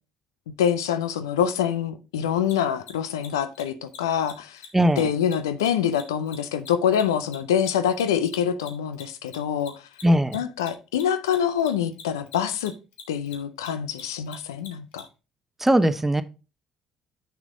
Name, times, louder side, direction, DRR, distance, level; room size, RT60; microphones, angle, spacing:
voice 1, 0.6-4.6 5.0-9.8 10.3-12.7 13.1-15.1, left 9 dB, 90° left, 0.5 m, -25 dB
Mechanisms, 2.4-2.5 2.8-2.9 3.2-3.3 3.5-3.6 3.9-4.0 4.2-4.3 4.6-4.7 5.0-7.7 7.9-15.0, left 7 dB, 75° left, 1.6 m, -43 dB
voice 2, 4.7-5.1 10.0-10.4 15.6-16.2, right 1 dB, 15° right, 0.8 m, -20 dB
7.1 x 6.1 x 3.8 m
hypercardioid pair, 55°, 2 cm